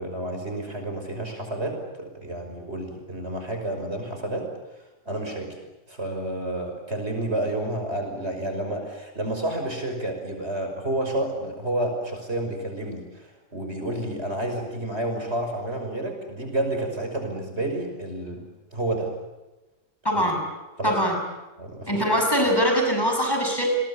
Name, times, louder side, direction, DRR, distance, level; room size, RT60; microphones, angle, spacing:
voice 1, 0.0-4.5 5.1-5.6 5.9-18.4 18.7-19.1 20.1-20.2 20.8-21.0 21.6-22.0, right 1 dB, 60° right, 4 dB, 6.1 m, -30 dB
voice 2, 20.0-20.4 20.8-21.2 21.9-23.7, equal, 20° left, 2 dB, 6.4 m, -22 dB
30.0 x 21.5 x 8.6 m, 1.1 s
omnidirectional pair, 1.3 m